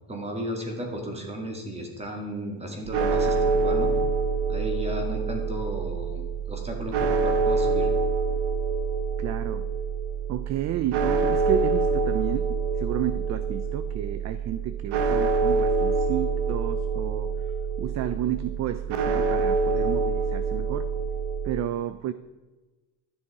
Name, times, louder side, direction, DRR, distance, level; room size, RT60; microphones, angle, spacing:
voice 1, 0.1-3.9 4.5-7.9, equal, 15° right, 2 dB, 2.1 m, -34 dB
sound 1, 2.9-21.6, right 4 dB, 60° right, 1.2 m, -26 dB
voice 2, 9.2-9.7 10.3-17.3 17.8-20.9 21.4-22.1, right 11 dB, 40° right, 12 dB, 0.4 m, -31 dB
12.5 x 9.6 x 4.8 m, 1.2 s
cardioid pair, 175°, 47 cm